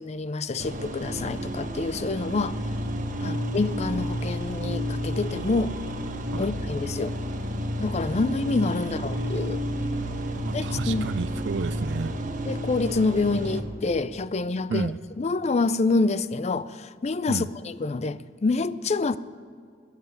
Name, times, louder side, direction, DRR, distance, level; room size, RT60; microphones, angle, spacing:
voice 1, 0.0-2.6 3.2-5.7 6.4-7.1 7.8-9.6 10.5-11.1 12.5-14.9 15.2-19.2, left 3 dB, 35° left, 0.4 m, -27 dB
sound 1, 0.6-13.6, equal, 45° right, 1.2 m, -31 dB
voice 2, 9.1-12.1 14.7-15.0 17.3-17.5, right 5 dB, 65° right, 0.4 m, -33 dB
13.0 x 10.5 x 9.4 m
head